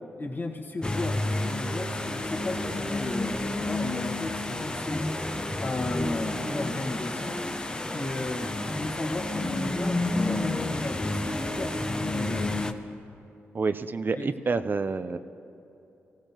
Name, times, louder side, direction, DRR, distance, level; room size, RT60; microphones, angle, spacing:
voice 1, 0.2-5.1 5.6-7.4 7.9-12.5 14.1-14.4, left 2 dB, 40° left, 2 dB, 1.6 m, -35 dB
sound 1, 0.8-12.7, left 2 dB, 15° left, 0.7 m, -30 dB
voice 2, 13.5-15.2, right 4 dB, 40° right, 11 dB, 0.5 m, -28 dB
19.5 x 15.0 x 2.9 m, 2.9 s
cardioid pair, 60°, 5 cm